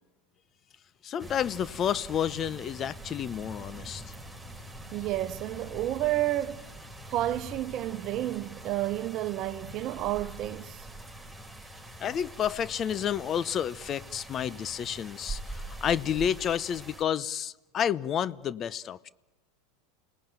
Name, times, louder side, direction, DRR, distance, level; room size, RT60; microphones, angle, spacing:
voice 1, 1.0-4.0 12.0-19.1, left 9 dB, 35° left, 0.8 m, -30 dB
sound 1, 1.2-17.0, right 1 dB, ahead, 4.6 m, -44 dB
voice 2, 4.9-6.7 7.1-10.9, right 15 dB, 45° right, 1.0 m, -31 dB
29.0 x 19.0 x 9.1 m
hypercardioid pair, 95°, 0 cm